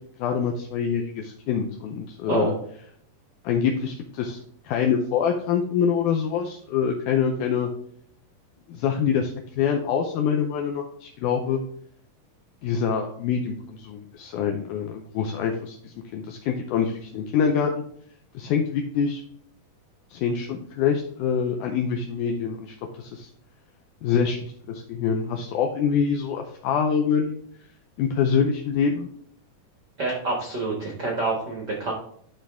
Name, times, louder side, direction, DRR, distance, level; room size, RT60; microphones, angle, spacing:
voice 1, 0.2-2.5 3.4-4.4 4.6-7.7 8.7-11.6 12.6-17.8 18.3-19.2 20.1-23.3 24.0-27.4 28.0-29.1, left 7 dB, 75° left, 3 dB, 2.0 m, -25 dB
voice 2, 30.0-31.9, right 3 dB, 70° right, 0 dB, 0.9 m, -27 dB
11.5 x 3.8 x 3.5 m, 0.67 s
omnidirectional pair, 4.1 m